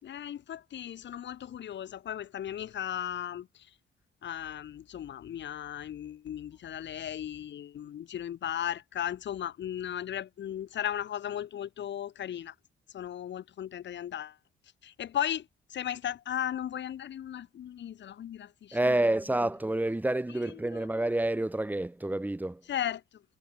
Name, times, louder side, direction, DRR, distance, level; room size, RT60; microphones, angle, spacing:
voice 1, 0.0-3.7 4.2-12.5 12.9-14.4 14.8-19.1 20.4-20.9 22.7-23.2, left 10 dB, 65° left, 3.0 m, -36 dB
voice 2, 18.7-22.6, right 1 dB, 10° right, 0.9 m, -28 dB
cardioid pair, 90°, 20 cm